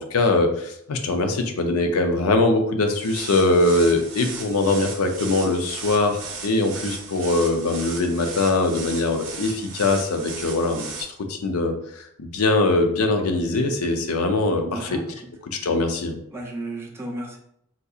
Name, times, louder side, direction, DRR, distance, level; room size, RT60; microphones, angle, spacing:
voice 1, 0.0-10.9 11.3-15.0 15.5-16.2, left 2 dB, 80° left, 5 dB, 0.5 m, -22 dB
sound 1, 2.9-11.0, right 4 dB, 60° right, 0.7 m, -36 dB
voice 2, 14.6-15.3 16.3-17.4, right 1 dB, 10° right, -1 dB, 0.5 m, -34 dB
3.7 x 2.7 x 2.3 m, 0.72 s
head